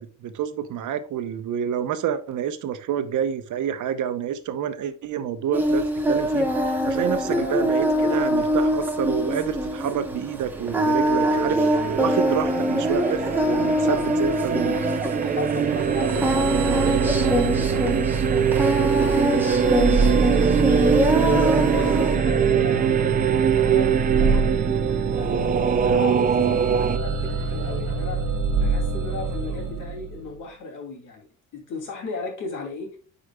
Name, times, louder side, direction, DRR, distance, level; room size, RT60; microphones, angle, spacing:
voice 1, 0.0-13.2 13.5-14.8, right 8 dB, 65° right, 11 dB, 0.8 m, -28 dB
Singing, 5.5-22.2, equal, 5° right, 0.9 m, -24 dB
sound 1, 10.5-27.0, right 8 dB, 30° right, 0.3 m, -23 dB
voice 2, 13.1-14.0 15.2-18.0 18.8-20.9 21.2-24.5 25.2-28.2 28.6-33.0, left 3 dB, 70° left, 1 dB, 2.8 m, -36 dB
sound 2, 15.7-30.4, right 4 dB, 90° right, 1.2 m, -26 dB
9.7 x 4.9 x 2.3 m, 0.39 s
cardioid pair, 165°, 32 cm